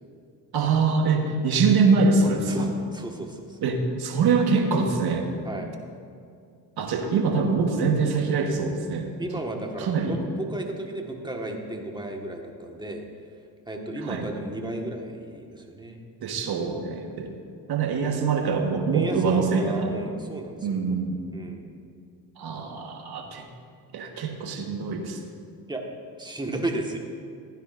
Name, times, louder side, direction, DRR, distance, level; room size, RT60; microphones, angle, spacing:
voice 1, 0.5-2.7 3.6-5.3 6.8-9.1 9.8-10.2 14.0-14.3 16.2-17.3 17.7-19.9 20.6-21.2 22.4-23.5 23.9-25.2, right 4 dB, 60° right, 3 dB, 1.5 m, -24 dB
voice 2, 2.5-3.6 5.4-5.7 9.2-13.0 13.7-16.0 18.9-20.8 21.3-21.7 25.7-25.8 26.2-27.0, right 1 dB, 10° right, 2 dB, 1.5 m, -34 dB
15.5 x 10.0 x 2.6 m, 2.3 s
supercardioid pair, 70°, 43 cm